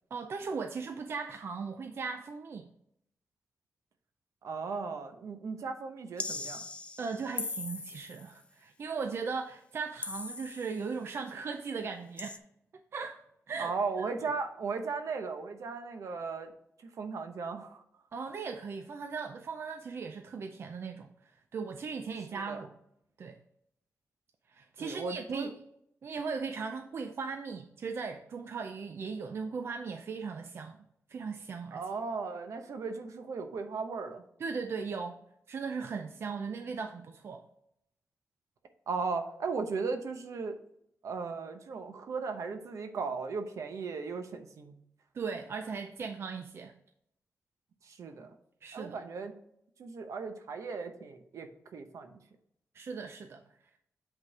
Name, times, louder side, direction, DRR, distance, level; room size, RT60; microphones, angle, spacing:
voice 1, 0.1-2.7 7.0-12.4 12.9-13.2 13.5-14.3 18.1-21.1 21.5-22.7 23.2-23.4 24.5-25.5 26.0-30.8 31.1-31.8 34.4-35.2 35.5-37.4 45.1-46.7 48.6-49.0 52.7-53.4, right 5 dB, 50° right, 6 dB, 0.5 m, -38 dB
voice 2, 4.4-6.6 13.6-16.5 17.0-17.8 22.3-22.6 24.8-25.5 31.7-34.2 38.9-40.5 41.0-44.8 47.8-48.3 48.7-49.3 49.8-52.2, right 4 dB, 75° right, 7 dB, 0.9 m, -36 dB
sound 1, 6.2-8.3 10.0-10.9 12.2-12.4, left 3 dB, 20° left, 0.4 m, -39 dB
8.0 x 3.8 x 4.9 m, 0.75 s
wide cardioid pair, 175°, 5 cm